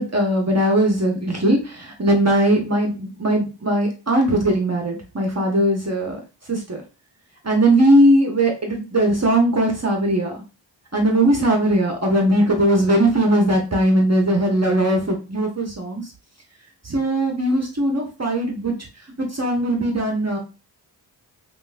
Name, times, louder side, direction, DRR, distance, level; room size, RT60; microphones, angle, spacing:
voice 1, 0.0-6.2 6.5-6.8 7.4-10.3 10.9-16.1 16.8-18.7 19.2-20.4, right 1 dB, 35° right, 1 dB, 1.1 m, -19 dB
5.1 x 2.6 x 2.4 m, 0.32 s
cardioid pair, 40°, 45 cm